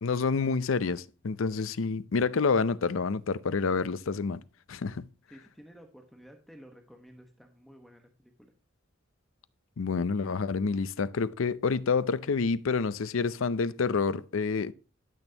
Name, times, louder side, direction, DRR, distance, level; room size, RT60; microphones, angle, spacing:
voice 1, 0.0-4.4 4.7-5.0 9.8-14.7, left 4 dB, 80° left, 0.5 m, -28 dB
voice 2, 5.3-8.5, equal, ahead, 1.1 m, -53 dB
12.0 x 6.2 x 2.8 m
head